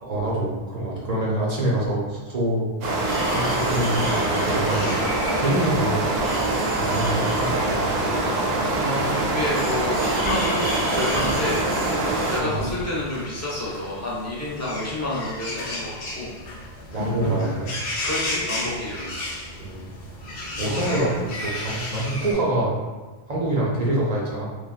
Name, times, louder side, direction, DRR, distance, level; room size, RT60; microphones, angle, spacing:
voice 1, 0.1-2.7 3.3-5.0 5.4-6.1 6.8-8.2 12.4-12.6 16.9-17.7 19.5-19.9 20.6-22.7 23.3-24.5, right 1 dB, 45° right, -5 dB, 0.6 m, -25 dB
sound 1, 2.8-12.4, right 2 dB, 75° right, 0.8 m, -24 dB
sound 2, 3.1-4.8 6.1-7.8 9.5-13.0, equal, 10° right, 0.9 m, -33 dB
sound 3, 4.7-22.3, left 1 dB, 65° left, 0.8 m, -35 dB
voice 2, 8.7-11.6 12.3-16.3 18.0-19.1 20.5-21.3, left 1 dB, 20° left, -6 dB, 0.5 m, -29 dB
3.3 x 2.2 x 2.4 m, 1.3 s
omnidirectional pair, 1.1 m